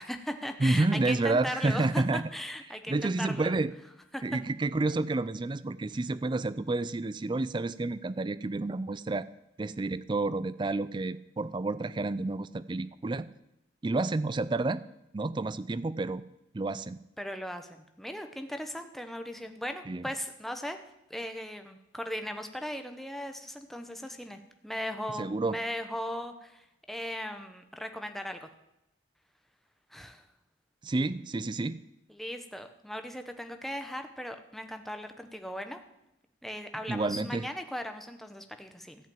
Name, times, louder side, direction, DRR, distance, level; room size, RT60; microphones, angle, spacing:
voice 1, 0.0-3.5 4.1-4.4 17.2-20.8 21.1-28.5 29.9-30.3 32.1-35.8 36.4-39.0, equal, ahead, 7 dB, 0.8 m, -38 dB
voice 2, 0.6-2.2 2.9-3.7 4.2-9.3 9.6-13.3 13.8-14.8 15.1-16.2 16.5-17.0 19.9-20.0 25.2-25.6 30.8-31.8 36.9-37.5, right 2 dB, 25° right, 16 dB, 0.4 m, -30 dB
13.5 x 5.7 x 9.0 m, 0.87 s
head